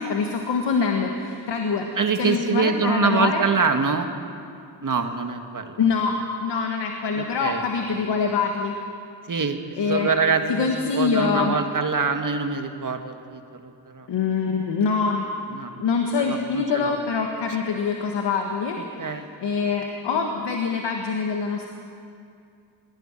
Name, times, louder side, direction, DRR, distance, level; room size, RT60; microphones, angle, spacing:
voice 1, 0.0-1.9 2.2-3.4 5.8-8.8 9.8-10.1 10.5-11.6 14.1-15.3 15.8-18.8 19.1-21.7, left 5 dB, 85° left, 2 dB, 1.7 m, -24 dB
voice 2, 2.0-4.1 4.8-5.8 7.1-7.6 9.3-10.7 10.9-14.1 15.5-15.8 16.2-16.9 19.0-19.3, right 5 dB, 50° right, 6 dB, 1.9 m, -25 dB
20.0 x 16.5 x 9.1 m, 2.5 s
cardioid pair, 60°, 41 cm